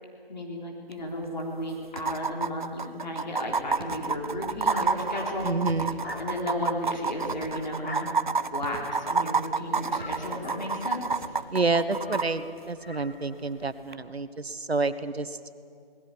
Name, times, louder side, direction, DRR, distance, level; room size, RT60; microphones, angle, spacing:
voice 1, 0.3-5.5 6.2-8.1 8.5-11.2, left 1 dB, 45° left, -1 dB, 3.6 m, -34 dB
sound 1, 0.9-1.0 1.2-1.3 2.0-12.3 13.9-14.0, right 4 dB, 50° right, 0.6 m, -29 dB
sound 2, 1.9-2.4 3.8-4.3 5.3-5.4 5.7-6.3 7.3-7.8 8.6-9.2 10.0-10.7 11.1-11.8, right 1 dB, 25° right, 2.7 m, -45 dB
sound 3, 4.0-13.9, left 1 dB, 80° left, 4.2 m, -44 dB
voice 2, 5.4-6.0 11.5-15.4, right 3 dB, 90° right, 13 dB, 1.3 m, -28 dB
20.0 x 16.0 x 9.9 m, 2.4 s
figure-of-eight pair, 170°, 30 cm